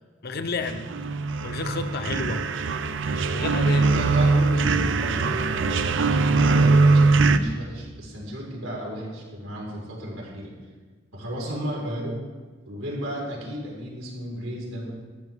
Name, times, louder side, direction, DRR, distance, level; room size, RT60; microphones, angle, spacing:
voice 1, 0.2-0.9 1.4-2.4 3.3-3.9, left 3 dB, 55° left, 8 dB, 0.8 m, -30 dB
sound 1, 0.6-7.4, right 3 dB, 65° right, 0.6 m, -21 dB
voice 2, 3.6-10.5 11.1-12.2 12.7-14.9, equal, 80° right, -3 dB, 4.7 m, -33 dB
13.5 x 13.0 x 3.6 m, 1.4 s
head